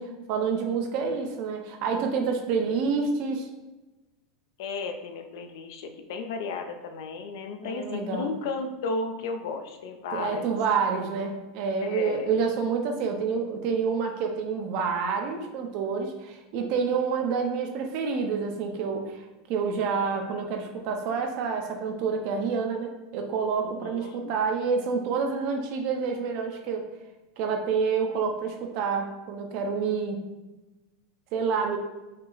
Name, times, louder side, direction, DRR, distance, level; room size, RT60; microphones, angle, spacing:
voice 1, 0.0-3.5 7.6-8.3 10.1-19.2 19.5-26.8 27.4-30.2 31.3-31.8, right 5 dB, 45° right, 4 dB, 0.7 m, -28 dB
voice 2, 4.6-10.5 11.8-12.3 23.6-24.3, left 4 dB, 70° left, 6 dB, 0.5 m, -34 dB
5.4 x 2.1 x 3.9 m, 1.1 s
supercardioid pair, 160°, 2 cm